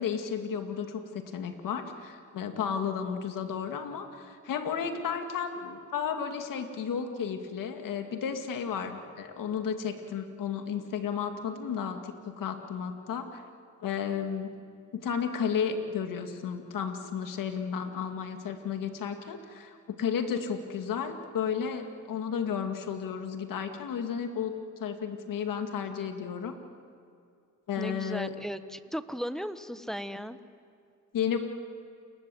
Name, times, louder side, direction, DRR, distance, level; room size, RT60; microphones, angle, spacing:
voice 1, 0.0-13.4 13.8-14.5 14.9-26.6 27.7-28.3 31.1-31.4, left 7 dB, 75° left, 6 dB, 2.3 m, -33 dB
voice 2, 27.8-30.4, equal, ahead, 11 dB, 1.3 m, -36 dB
29.0 x 21.0 x 7.8 m, 2.4 s
supercardioid pair, 60°, 33 cm